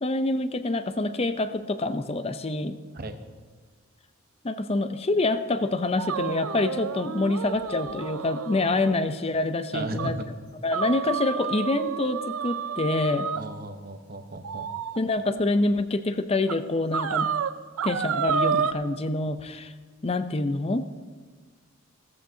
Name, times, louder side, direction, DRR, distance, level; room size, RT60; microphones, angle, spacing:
voice 1, 0.0-2.8 4.4-10.2 10.6-13.3 15.0-17.3 17.8-19.7 20.0-20.8, left 2 dB, 25° left, 11 dB, 0.5 m, -26 dB
sound 1, 6.0-9.0 9.3-9.4 10.0-10.1 10.7-13.4 14.4-15.0 15.8-15.9 16.5-16.6 16.9-18.7, right 7 dB, 80° right, 0.5 m, -30 dB
voice 2, 9.7-10.3 13.3-14.7, right 2 dB, 45° right, 7 dB, 0.9 m, -35 dB
17.0 x 14.0 x 2.8 m, 1.5 s
head